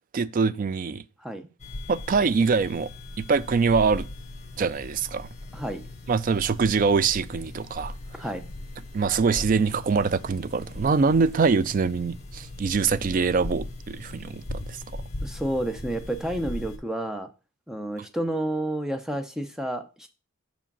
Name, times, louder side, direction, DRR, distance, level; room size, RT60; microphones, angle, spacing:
voice 1, 0.1-1.0 1.9-2.9 3.2-4.1 4.6-5.3 6.1-7.9 8.9-15.0, right 5 dB, 40° right, 0.3 m, -24 dB
sound 1, 1.6-16.8, left 1 dB, 30° left, 1.5 m, -39 dB
voice 2, 5.5-5.9 8.2-8.5 15.2-17.3 17.7-20.1, right 1 dB, ahead, 0.6 m, -30 dB
5.7 x 5.0 x 5.3 m
head